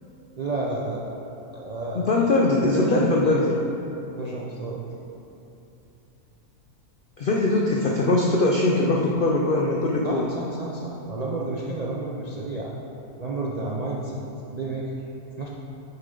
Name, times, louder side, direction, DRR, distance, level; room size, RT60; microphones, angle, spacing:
voice 1, 0.4-1.0 1.5-2.3 2.7-3.6 4.1-4.8 10.0-12.7 13.2-14.2 14.5-14.9 15.4-15.5, right 2 dB, 55° right, -4 dB, 0.4 m, -31 dB
voice 2, 1.9-3.5 7.2-10.3, left 2 dB, 65° left, -1 dB, 0.5 m, -21 dB
7.5 x 6.6 x 3.8 m, 2.9 s
omnidirectional pair, 1.6 m